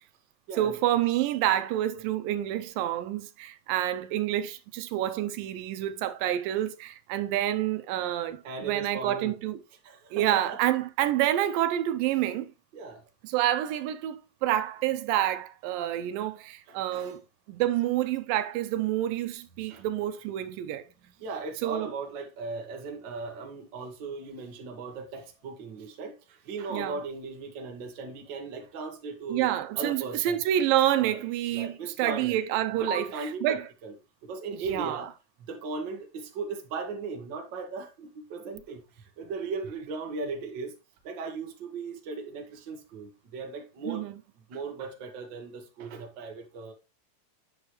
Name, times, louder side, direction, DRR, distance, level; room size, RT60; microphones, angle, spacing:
voice 1, 0.5-9.6 10.1-12.5 13.2-17.2 17.5-20.8 21.6-21.9 26.7-27.0 29.3-33.7 34.5-35.1 43.8-44.2, right 12 dB, 85° right, 2.3 m, -28 dB
voice 2, 8.4-9.3 9.8-10.6 12.7-13.0 16.7-17.2 19.7-19.8 21.2-29.5 29.7-30.4 31.1-31.2 31.5-32.4 32.8-33.9 34.2-35.1 35.5-38.8 39.2-40.7 41.0-44.1 44.5-46.7, right 4 dB, 50° right, 1.5 m, -37 dB
8.2 x 6.9 x 3.1 m
omnidirectional pair, 4.0 m